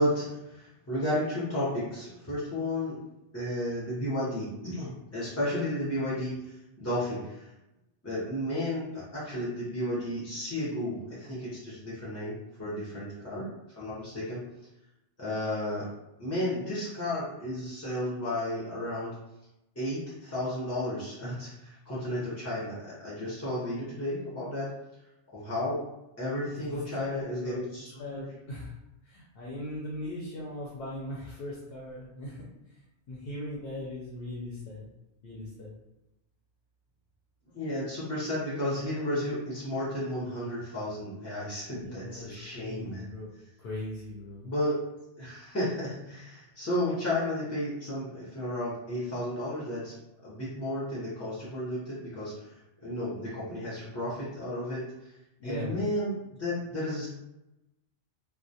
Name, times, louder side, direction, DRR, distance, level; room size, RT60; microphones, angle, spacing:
voice 1, 0.0-3.0 3.3-7.5 8.0-13.4 13.8-14.4 15.2-15.9 16.2-19.1 19.8-24.7 25.3-25.8 26.2-28.3 37.5-43.1 44.4-44.7 45.2-49.9 50.2-52.3 52.8-54.8 55.4-57.1, left 1 dB, 20° left, -10 dB, 0.4 m, -33 dB
voice 2, 26.5-28.7 29.0-32.4 32.7-32.8 33.1-34.9 35.2-35.7 41.6-43.3 43.6-44.4 55.4-55.8, left 1 dB, 65° left, -4 dB, 0.8 m, -39 dB
2.3 x 2.0 x 2.6 m, 0.93 s
omnidirectional pair, 1.2 m